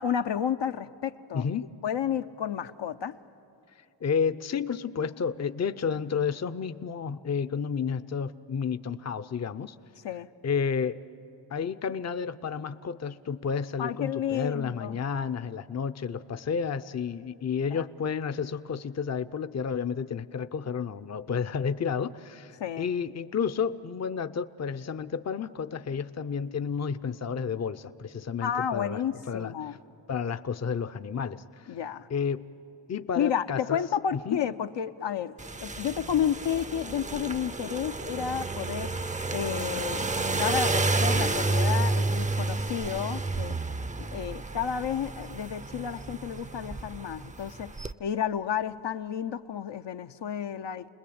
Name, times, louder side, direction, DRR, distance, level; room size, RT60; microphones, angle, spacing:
voice 1, 0.0-1.5 1.8-3.2 10.0-10.3 13.8-15.0 17.7-17.8 22.6-22.9 28.4-29.8 31.7-32.1 33.2-35.4 35.6-38.9 39.3-40.0 40.3-43.5 44.0-47.7 48.0-50.9, left 8 dB, 70° left, 7 dB, 0.8 m, -31 dB
voice 2, 1.3-1.7 4.0-9.8 10.4-11.0 11.5-29.0 29.3-29.5 30.1-31.7 32.1-32.4 32.9-33.8 34.1-34.4, left 6 dB, 35° left, 12 dB, 0.7 m, -31 dB
sound 1, 35.4-47.9, right 2 dB, 15° right, 0.6 m, -30 dB
30.0 x 20.5 x 8.7 m, 2.7 s
cardioid pair, 70°, 45 cm